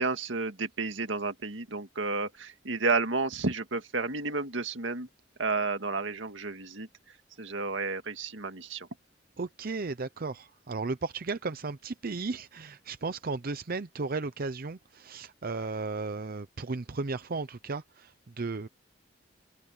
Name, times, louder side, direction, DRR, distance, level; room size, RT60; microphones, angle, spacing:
voice 1, 0.0-5.1 5.4-6.9 7.4-8.9, right 3 dB, 85° right, 2.0 m, -31 dB
voice 2, 9.4-18.7, right 3 dB, 50° right, 0.7 m, -35 dB
open air
head